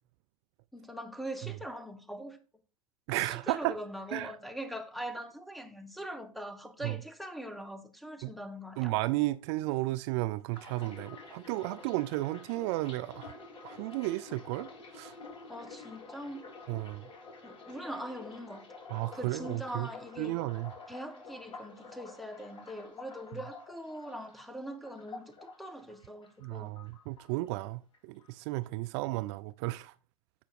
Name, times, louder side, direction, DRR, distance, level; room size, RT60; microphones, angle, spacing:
voice 1, 0.7-2.4 3.2-8.9 15.5-16.4 17.4-18.7 19.1-20.4 20.9-26.7, equal, ahead, 1.1 m, -42 dB
voice 2, 3.1-3.7 4.1-4.3 6.8-7.0 8.2-8.3 8.8-13.3 13.6-15.1 16.7-17.1 18.9-19.9 20.2-20.7 26.4-29.9, right 19 dB, 55° right, 0.4 m, -33 dB
sound 1, 10.5-26.5 26.8-27.7 27.9-28.3, left 3 dB, 30° left, 3.1 m, -49 dB
15.5 x 5.7 x 2.5 m
hypercardioid pair, 90°, 17 cm